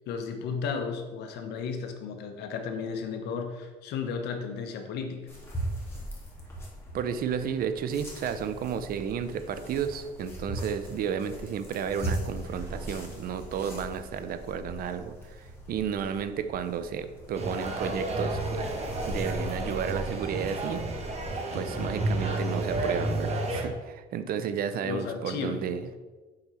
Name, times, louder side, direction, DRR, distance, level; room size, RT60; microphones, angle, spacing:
voice 1, 0.1-5.3 24.8-25.7, left 5 dB, 80° left, 5 dB, 1.2 m, -34 dB
sound 1, 5.3-21.3, right 1 dB, 15° left, 2.3 m, -40 dB
voice 2, 6.9-18.7 19.1-21.0 21.5-25.9, right 7 dB, 60° right, 11 dB, 0.7 m, -32 dB
sound 2, 12.2-15.1, right 1 dB, 20° right, 2.0 m, -46 dB
sound 3, 17.3-23.6, right 2 dB, 40° right, 1.7 m, -31 dB
7.7 x 4.5 x 5.6 m, 1.3 s
cardioid pair, 110°, 17 cm